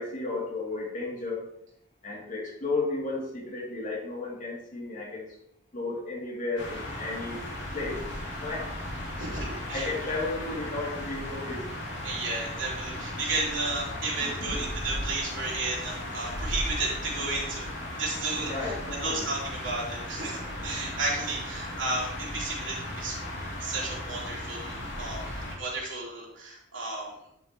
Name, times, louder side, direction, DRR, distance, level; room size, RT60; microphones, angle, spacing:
voice 1, 0.0-1.5 2.0-5.3 5.7-7.4 7.7-8.0 8.4-8.8 9.5-11.6 12.0-12.3 14.2-14.7 17.9-18.0 18.5-19.3, left 3 dB, 40° left, -3 dB, 2.7 m, -34 dB
sound 1, 6.6-25.5, left 1 dB, 65° left, 2.8 m, -36 dB
voice 2, 9.2-9.9 12.0-17.7 18.0-18.7 19.0-23.1 23.6-25.3 25.6-27.1, right 2 dB, 75° right, -5 dB, 3.4 m, -33 dB
11.5 x 6.4 x 3.0 m, 0.77 s
head